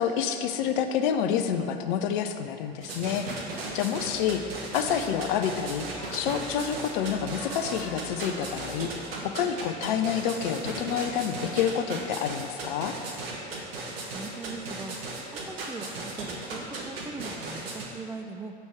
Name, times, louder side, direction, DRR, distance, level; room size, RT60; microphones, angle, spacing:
voice 1, 0.0-5.9 6.1-8.9 9.2-13.0, left 8 dB, 50° left, 7 dB, 0.6 m, -28 dB
sound 1, 2.8-17.9, right 3 dB, 65° right, 1.3 m, -36 dB
sound 2, 4.1-9.2, left 1 dB, 15° left, 1.7 m, -47 dB
voice 2, 14.1-15.0 15.3-18.5, right 3 dB, 5° right, 6 dB, 0.4 m, -40 dB
7.7 x 5.3 x 4.7 m, 2.4 s
figure-of-eight pair, 70°, 31 cm